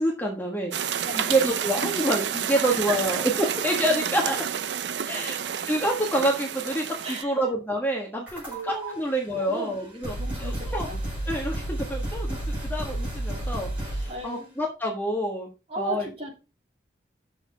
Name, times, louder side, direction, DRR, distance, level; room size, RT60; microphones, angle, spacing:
voice 1, 0.0-3.3 3.6-4.4 5.0-5.4 5.7-10.9 11.3-15.5 15.8-16.1, right 1 dB, 10° left, 0 dB, 1.4 m, -27 dB
sound 1, 0.7-7.2, right 8 dB, 70° right, 0.5 m, -30 dB
voice 2, 1.0-1.4 2.6-3.2 7.0-7.4 8.5-9.0 9.3-9.7 10.2-11.0 14.1-14.5 15.7-16.4, right 2 dB, 30° right, -2 dB, 3.3 m, -36 dB
sound 2, 8.3-8.9 9.7-9.8 10.0-14.2, right 1 dB, 10° right, 5.0 m, -31 dB
6.9 x 6.6 x 5.1 m, 0.31 s
head